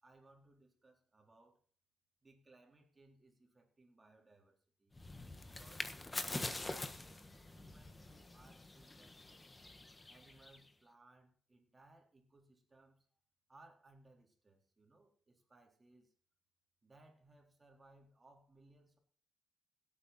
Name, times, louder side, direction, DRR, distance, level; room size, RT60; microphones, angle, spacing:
voice 1, 0.0-1.6 2.2-5.2 5.4-5.9 6.3-9.4 10.1-13.2 13.5-16.1 16.8-19.0, right 2 dB, 25° right, 2 dB, 3.8 m, -65 dB
sound 1, 4.9-10.7, left 2 dB, 20° left, 1.4 m, -45 dB
17.0 x 8.6 x 4.3 m, 0.43 s
cardioid pair, 90°, 0 cm